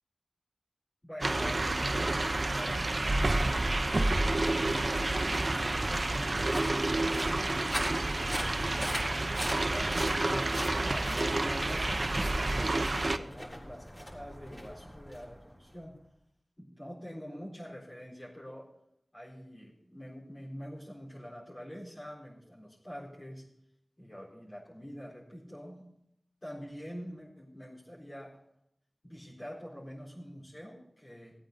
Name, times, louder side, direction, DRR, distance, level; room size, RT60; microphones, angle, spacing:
voice 1, 1.0-5.5 6.1-7.9 8.4-8.7 9.1-16.0 16.6-18.7 19.1-23.5 24.0-25.8 26.4-28.4 29.0-31.3, equal, 40° left, -7 dB, 4.1 m, -46 dB
sound 1, 1.2-13.2, right 2 dB, 55° right, 0.8 m, -29 dB
sound 2, 2.6-15.8, equal, 20° left, 4.0 m, -42 dB
17.0 x 8.7 x 4.0 m, 0.74 s
wide cardioid pair, 40°, 0 cm